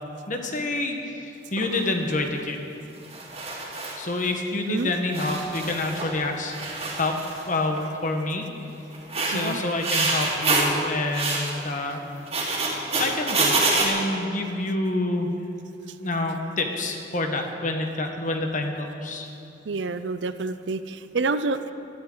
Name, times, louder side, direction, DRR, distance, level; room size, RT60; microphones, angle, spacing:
voice 1, 0.3-2.6 4.0-7.2 7.5-8.5 9.2-12.0 13.0-15.3 16.0-19.3, left 2 dB, 45° left, 4 dB, 1.3 m, -28 dB
sound 1, 1.6-1.8 3.0-4.0 4.8-4.9 5.1-6.2 6.5-7.5 7.8-8.1 8.9-10.7 11.1-11.5 12.2-13.9, right 3 dB, 35° right, 3.1 m, -26 dB
voice 2, 19.7-21.7, right 3 dB, 65° right, 12 dB, 0.5 m, -28 dB
19.5 x 13.0 x 3.9 m, 2.9 s
head